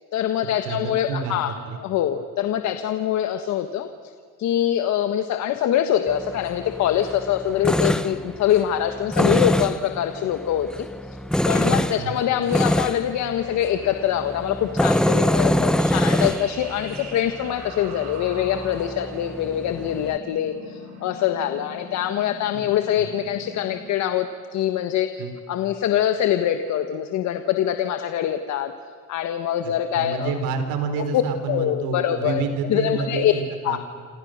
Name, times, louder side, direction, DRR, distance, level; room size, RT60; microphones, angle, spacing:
voice 1, 0.1-3.9 4.4-10.9 11.5-28.7 29.1-30.3 31.1-31.2 31.5-32.4 32.7-33.3 33.6-33.8, left 10 dB, 50° left, 8 dB, 1.5 m, -24 dB
voice 2, 0.6-1.4 1.7-1.8 11.6-12.2 22.5-22.6 23.0-23.1 25.2-25.3 29.6-33.8, right 5 dB, 80° right, 7 dB, 4.2 m, -29 dB
Tools, 6.1-20.2, left 1 dB, ahead, 0.8 m, -25 dB
sound 1, 15.8-23.9, right 1 dB, 50° right, 6.1 m, -42 dB
28.5 x 26.5 x 6.6 m, 2.2 s
cardioid pair, 140°, 35 cm